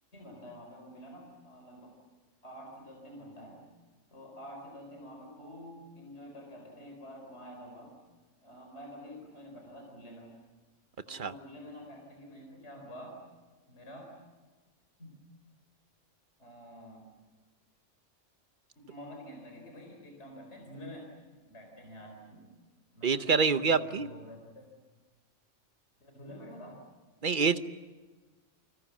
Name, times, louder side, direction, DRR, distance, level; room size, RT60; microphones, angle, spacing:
voice 1, 0.1-1.9 2.4-3.7 4.1-8.0 8.4-10.4 11.0-13.2 13.7-14.1 15.0-15.1 16.4-17.1 18.8-21.1 21.5-22.5 22.9-24.7 26.0-26.8, equal, 60° left, 2 dB, 4.6 m, -48 dB
voice 2, 23.0-24.1 27.2-27.6, right 5 dB, 45° right, 11 dB, 1.1 m, -26 dB
29.0 x 24.5 x 7.4 m, 1.3 s
omnidirectional pair, 1.3 m